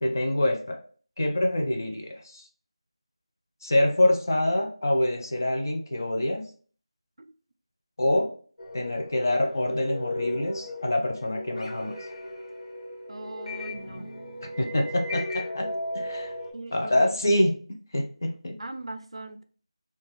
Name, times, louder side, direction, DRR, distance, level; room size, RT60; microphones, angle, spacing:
voice 1, 0.0-0.8 1.2-2.4 3.6-6.5 8.0-8.3 8.7-12.0 14.6-16.3 16.7-17.6 17.9-18.6, left 1 dB, 35° left, 3 dB, 0.4 m, -26 dB
sound 1, 8.6-16.5, left 1 dB, 80° left, 0.8 m, -36 dB
voice 2, 13.1-14.1 16.5-17.2 18.6-19.4, right 2 dB, 70° right, 8 dB, 0.4 m, -39 dB
2.5 x 2.3 x 3.0 m, 0.44 s
figure-of-eight pair, 175°, 3 cm